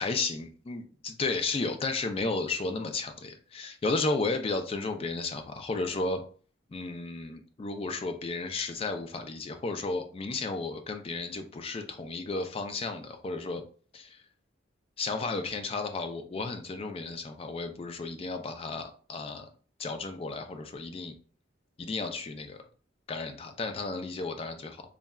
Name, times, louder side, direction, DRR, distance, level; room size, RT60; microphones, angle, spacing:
voice 1, 0.0-6.2 6.7-13.6 13.9-14.2 15.0-19.5 19.8-21.1 21.8-22.6 23.1-24.8, left 3 dB, 30° left, 6 dB, 0.3 m, -33 dB
3.5 x 2.1 x 2.2 m, 0.41 s
head